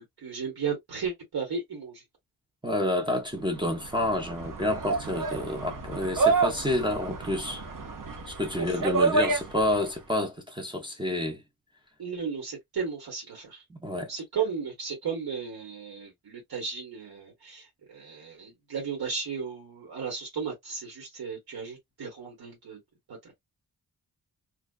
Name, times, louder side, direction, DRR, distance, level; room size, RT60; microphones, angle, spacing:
voice 1, 0.0-2.0 8.5-9.0 12.0-13.6 14.1-22.8 23.1-23.4, right 6 dB, 70° right, 1.2 m, -35 dB
voice 2, 2.6-7.6 8.3-11.4 13.7-14.1, left 1 dB, 15° right, 0.6 m, -29 dB
sound 1, 3.5-9.9, right 3 dB, 55° right, 0.7 m, -29 dB
2.4 x 2.3 x 2.3 m
wide cardioid pair, 130°, 38 cm